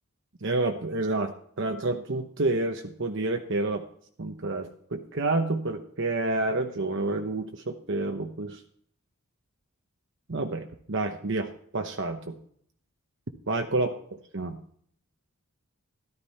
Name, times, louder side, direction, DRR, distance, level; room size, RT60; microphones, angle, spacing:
voice 1, 0.4-3.8 4.2-8.6 10.3-12.4 13.5-13.9 14.3-14.6, right 2 dB, 55° right, 5 dB, 0.9 m, -29 dB
13.5 x 12.5 x 4.3 m, 0.62 s
head